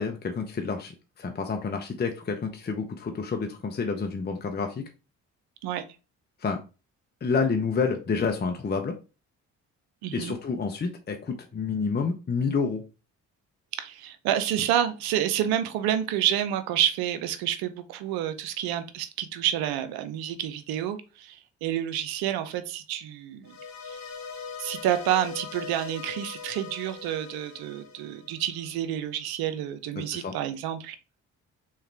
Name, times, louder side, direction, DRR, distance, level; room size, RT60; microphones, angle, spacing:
voice 1, 0.0-4.9 6.4-6.6 7.2-9.0 10.1-12.8 30.0-30.3, left 5 dB, 25° left, 4 dB, 0.7 m, -29 dB
voice 2, 10.0-10.4 13.7-23.5 23.8-24.0 24.6-31.0, right 11 dB, 85° right, 10 dB, 0.6 m, -29 dB
sound 1, 23.4-28.7, left 5 dB, 50° left, 1.4 m, -41 dB
3.5 x 3.3 x 3.3 m, 0.32 s
supercardioid pair, 55°, 36 cm